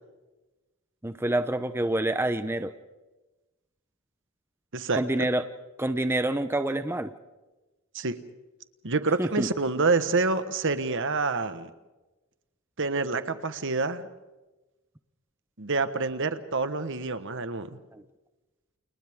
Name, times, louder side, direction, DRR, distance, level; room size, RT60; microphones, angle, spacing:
voice 1, 1.0-2.7 5.0-5.4 5.8-7.1 9.2-9.5 17.9-18.0, right 1 dB, 10° right, 9 dB, 0.7 m, -27 dB
voice 2, 4.7-5.3 7.9-8.2 8.8-11.7 12.8-14.1 15.6-17.8, right 3 dB, 60° right, 11 dB, 1.4 m, -27 dB
29.5 x 29.5 x 3.7 m, 1.1 s
head